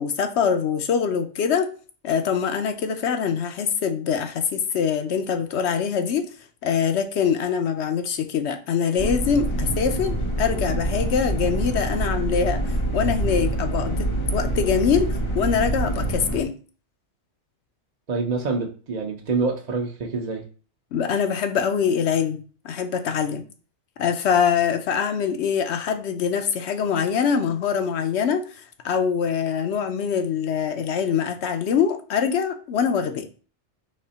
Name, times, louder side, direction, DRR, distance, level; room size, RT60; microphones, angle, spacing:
voice 1, 0.0-1.7 2.0-6.3 6.6-12.6 12.9-16.5 20.9-23.4 24.0-28.4 28.8-33.3, left 7 dB, 70° left, 8 dB, 0.9 m, -24 dB
sound 1, 9.0-16.4, right 1 dB, 35° left, 0.5 m, -26 dB
voice 2, 18.1-20.4, right 4 dB, 45° right, 1 dB, 0.7 m, -26 dB
4.2 x 3.1 x 3.9 m, 0.38 s
omnidirectional pair, 1.2 m